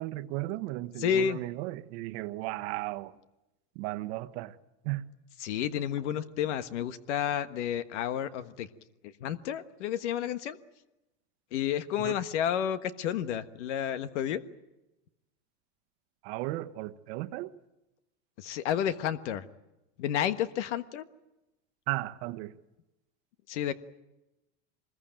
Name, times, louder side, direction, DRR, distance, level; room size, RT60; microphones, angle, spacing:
voice 1, 0.0-3.1 3.7-4.6 4.8-5.1 12.0-12.1 16.2-17.5 21.9-22.6, right 18 dB, 60° right, 1.3 m, -35 dB
voice 2, 1.0-1.4 5.4-8.7 9.2-10.6 11.5-14.4 18.4-19.4 20.0-21.0 23.5-23.7, left 9 dB, 80° left, 1.5 m, -31 dB
24.5 x 21.0 x 9.0 m
supercardioid pair, 140°, 35 cm